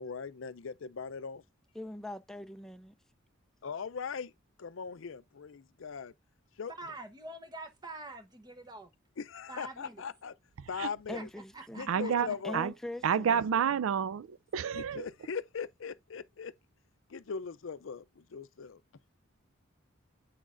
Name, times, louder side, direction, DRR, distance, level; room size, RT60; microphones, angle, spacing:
voice 1, 0.0-1.4 3.6-4.3 4.6-6.1 6.6-6.9 9.2-10.3 10.7-11.3 11.7-12.6 13.1-13.6 14.7-16.5 17.1-18.8, left 6 dB, 65° left, 0.5 m, -40 dB
voice 2, 1.7-2.9 11.1-11.9 12.4-13.5, left 1 dB, ahead, 0.4 m, -42 dB
voice 3, 6.8-8.9 9.5-10.0 11.1-11.2 11.5-12.1, right 2 dB, 20° right, 1.0 m, -45 dB
voice 4, 11.9-12.7 13.0-15.1, right 7 dB, 75° right, 0.4 m, -30 dB
8.1 x 6.2 x 2.5 m
head